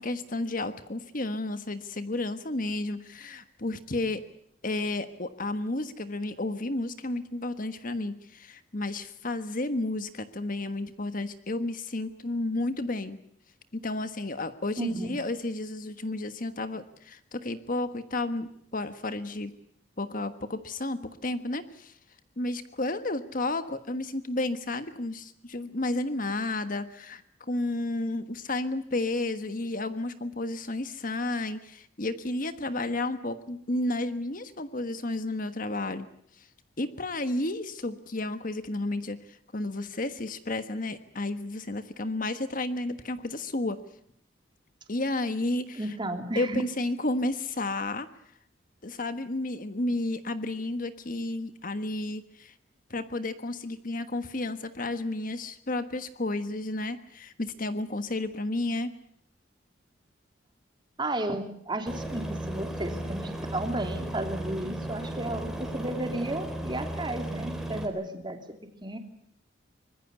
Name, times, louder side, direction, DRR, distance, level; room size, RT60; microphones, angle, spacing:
voice 1, 0.0-4.2 4.6-13.2 13.7-19.5 20.0-21.9 22.4-36.1 36.4-36.5 36.8-43.8 44.9-45.8 46.3-48.1 48.8-52.5 52.9-58.9, left 2 dB, 45° left, 11 dB, 1.4 m, -32 dB
voice 2, 14.8-15.2 45.8-46.6 61.0-63.2 63.5-68.4 68.8-69.0, right 1 dB, 25° right, 5 dB, 3.1 m, -33 dB
Aircraft, 61.9-67.9, right 1 dB, 5° right, 3.7 m, -35 dB
24.5 x 21.0 x 8.2 m, 0.66 s
head